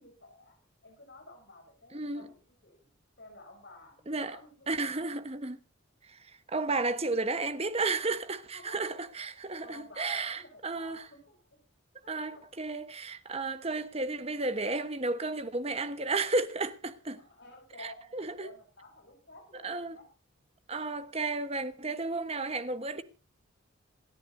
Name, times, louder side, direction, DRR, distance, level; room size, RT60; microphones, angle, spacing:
voice 1, 0.0-2.9 3.2-4.7 8.5-9.1 9.6-11.4 12.0-12.4 17.1-20.1, left 2 dB, 55° left, 6.7 m, -53 dB
voice 2, 1.9-2.3 4.1-4.4 4.7-5.6 6.0-11.1 12.1-17.2 17.8-18.5 19.6-20.0 20.7-23.0, right 3 dB, 30° right, 1.1 m, -33 dB
27.5 x 11.0 x 2.7 m
head